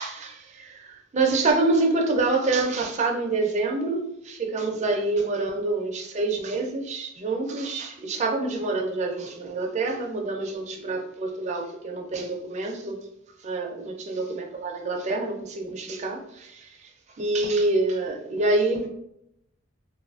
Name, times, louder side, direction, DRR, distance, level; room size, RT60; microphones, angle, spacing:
voice 1, 0.0-13.0 13.4-16.9 17.2-18.9, right 3 dB, 35° right, 2 dB, 0.4 m, -27 dB
2.5 x 2.4 x 2.3 m, 0.78 s
head